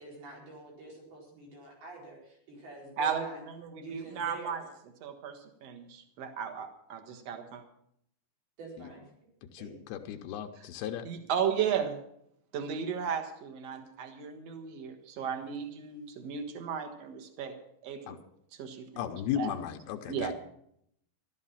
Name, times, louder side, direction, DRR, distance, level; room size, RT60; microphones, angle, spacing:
voice 1, 0.0-3.4 3.7-4.6 8.6-9.0 9.6-10.2, right 4 dB, 80° right, -3 dB, 6.5 m, -46 dB
voice 2, 3.0-4.6 5.0-7.6 10.6-10.7 11.0-12.0 12.5-17.5 17.8-18.2 18.5-19.5 20.1-20.4, right 7 dB, 55° right, 6 dB, 2.2 m, -35 dB
voice 3, 9.6-11.0 18.1-18.2 19.0-20.3, left 10 dB, 85° left, 4 dB, 2.7 m, -35 dB
14.0 x 12.5 x 5.7 m, 0.72 s
omnidirectional pair, 4.4 m